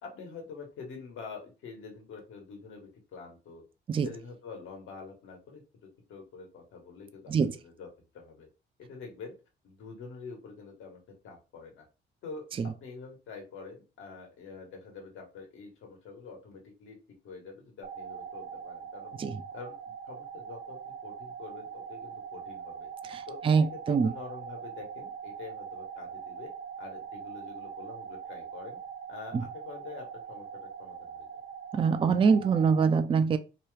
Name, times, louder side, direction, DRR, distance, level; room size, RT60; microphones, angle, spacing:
voice 1, 0.0-3.6 4.0-7.9 8.1-8.5 8.8-9.3 9.6-11.8 12.2-17.0 17.2-19.1 19.5-22.9 23.3-26.5 26.8-28.8 29.1-31.3, left 4 dB, 80° left, 1.3 m, -46 dB
sound 1, 17.8-32.9, right 7 dB, 50° right, 0.7 m, -42 dB
voice 2, 23.1-24.1 31.7-33.4, right 5 dB, 25° right, 0.3 m, -24 dB
2.9 x 2.3 x 3.2 m
cardioid pair, 90°, 20 cm